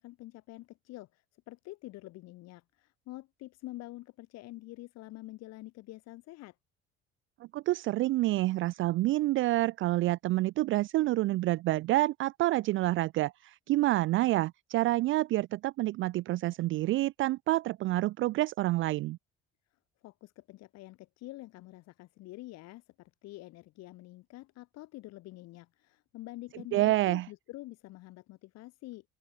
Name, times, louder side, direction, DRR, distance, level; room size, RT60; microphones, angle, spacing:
voice 1, 0.0-6.6 20.0-29.1, left 18 dB, 55° left, 2.5 m, -47 dB
voice 2, 7.5-19.2 26.7-27.3, right 17 dB, 40° right, 0.5 m, -28 dB
open air
figure-of-eight pair, 60°, 31 cm